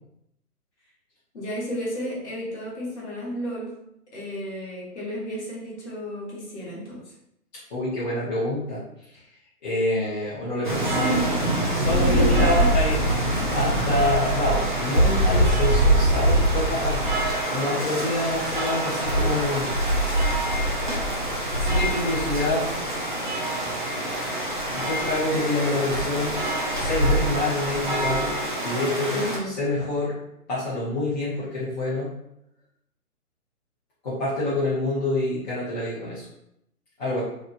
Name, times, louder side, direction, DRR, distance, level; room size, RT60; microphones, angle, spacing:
voice 1, 1.3-3.7 4.1-7.1 11.9-12.7 29.1-29.5, equal, 45° left, -5 dB, 1.1 m, -32 dB
voice 2, 7.7-9.2 9.6-17.2 17.5-19.7 21.6-22.7 24.7-26.4 26.7-30.2 30.5-32.2 34.0-36.3 37.0-37.2, left 1 dB, 30° left, -11 dB, 0.8 m, -27 dB
sound 1, 10.6-29.4, right 1 dB, 35° right, 0.4 m, -24 dB
2.9 x 2.4 x 2.4 m, 0.80 s
figure-of-eight pair, 135°, 45 cm